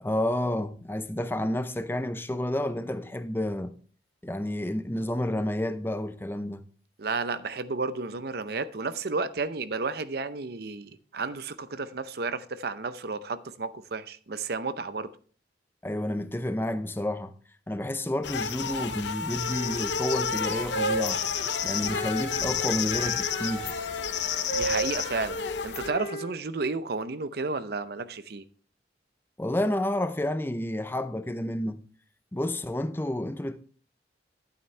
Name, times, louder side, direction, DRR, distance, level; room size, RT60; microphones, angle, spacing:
voice 1, 0.0-3.7 4.2-6.6 15.8-17.3 17.7-21.2 21.6-23.7 29.4-31.8 32.3-33.6, left 1 dB, 10° left, 0.6 m, -30 dB
voice 2, 7.0-15.1 24.5-28.4, right 4 dB, 60° right, 0.6 m, -32 dB
sound 1, 18.2-25.9, left 7 dB, 80° left, 0.8 m, -31 dB
Wind instrument woodwind instrument, 19.5-22.5 22.9-26.3, right 1 dB, 55° left, 2.6 m, -34 dB
11.5 x 9.0 x 3.3 m
head